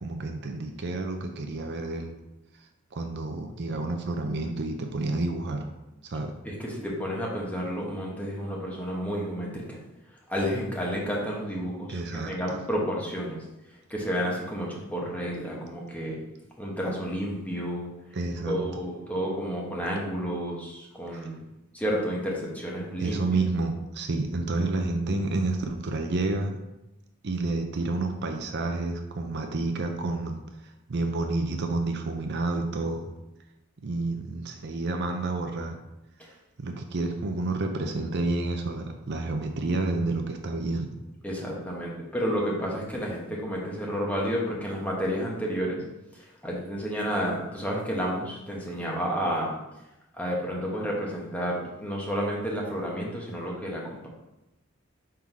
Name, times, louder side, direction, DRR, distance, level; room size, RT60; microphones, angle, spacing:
voice 1, 0.0-2.1 2.9-5.7 6.0-6.3 11.9-12.3 18.1-18.6 21.1-21.3 23.0-26.6 27.2-30.4 30.6-33.1 33.8-35.8 36.6-40.9, right 2 dB, 55° right, 4 dB, 0.6 m, -29 dB
voice 2, 6.4-9.8 10.3-11.9 12.2-13.4 13.9-16.2 16.6-17.9 18.5-21.4 21.7-23.2 41.2-45.8 46.4-49.5 50.2-54.1, equal, 5° left, -3 dB, 1.2 m, -30 dB
5.8 x 3.7 x 4.6 m, 0.95 s
head